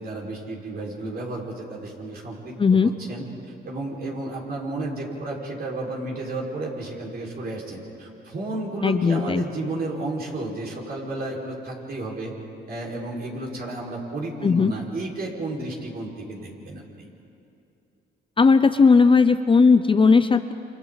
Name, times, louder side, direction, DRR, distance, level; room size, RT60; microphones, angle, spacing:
voice 1, 0.0-2.5 2.8-3.3 3.6-12.3 12.7-17.1, right 2 dB, 50° right, -3 dB, 5.2 m, -32 dB
voice 2, 2.6-2.9 8.8-9.5 14.4-14.7 18.4-20.5, left 4 dB, 25° left, 10 dB, 0.7 m, -17 dB
28.0 x 27.5 x 4.1 m, 2.7 s
cardioid pair, 90°, 20 cm